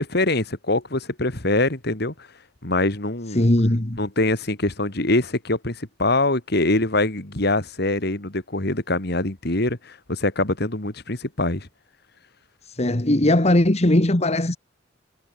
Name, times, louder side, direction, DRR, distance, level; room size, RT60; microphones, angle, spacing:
voice 1, 0.0-2.1 2.6-3.5 4.0-11.7, left 2 dB, 60° left, 2.8 m, -24 dB
voice 2, 3.4-4.0 12.8-14.6, left 1 dB, 35° left, 1.7 m, -19 dB
head